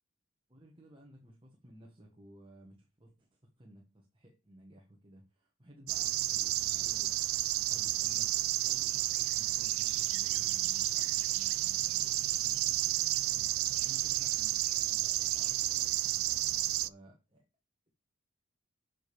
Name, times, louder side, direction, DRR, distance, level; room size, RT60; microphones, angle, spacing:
voice 1, 0.5-17.4, equal, 25° right, 1.5 m, -56 dB
sound 1, 5.9-16.9, right 16 dB, 80° right, 0.4 m, -31 dB
7.7 x 5.3 x 7.0 m
head